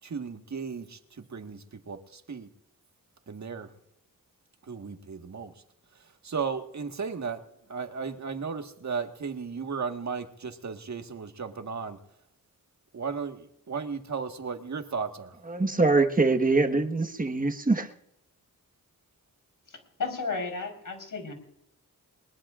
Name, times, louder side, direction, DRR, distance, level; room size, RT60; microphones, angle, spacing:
voice 1, 0.0-2.5 3.3-3.7 4.6-5.6 5.9-7.4 7.7-12.0 12.9-15.4, right 5 dB, 55° right, 5 dB, 1.7 m, -35 dB
voice 2, 15.5-17.9, right 3 dB, 25° right, 5 dB, 1.4 m, -23 dB
voice 3, 19.7-21.3, left 4 dB, 65° left, 3 dB, 4.5 m, -34 dB
22.5 x 21.0 x 2.5 m, 0.79 s
wide cardioid pair, 85°, 34 cm